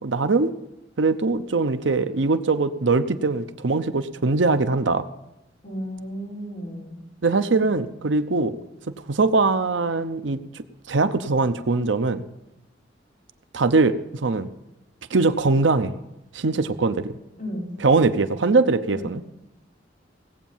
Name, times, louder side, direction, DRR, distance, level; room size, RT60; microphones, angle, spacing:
voice 1, 0.0-0.5 1.0-5.0 7.2-8.6 9.1-12.2 13.5-14.5 15.1-15.9 16.3-17.2 17.8-19.2, right 3 dB, 80° right, 11 dB, 0.7 m, -22 dB
voice 2, 5.6-7.0 17.4-17.7 18.9-19.1, equal, 45° left, -3 dB, 4.6 m, -33 dB
17.5 x 8.3 x 7.3 m, 0.88 s
head